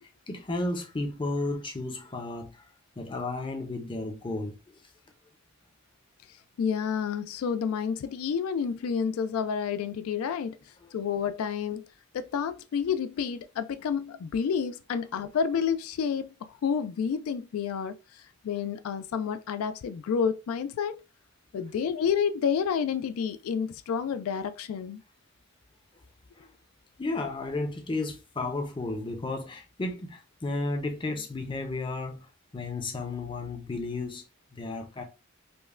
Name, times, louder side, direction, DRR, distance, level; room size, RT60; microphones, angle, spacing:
voice 1, 0.3-2.7 3.0-4.6 10.8-10.9 26.3-26.5 27.0-32.3 32.5-34.2 34.5-35.0, left 2 dB, 25° left, 0.5 m, -33 dB
voice 2, 6.6-10.6 10.9-11.9 12.1-21.0 21.5-25.0, left 7 dB, 80° left, 0.3 m, -29 dB
5.2 x 2.1 x 2.4 m
head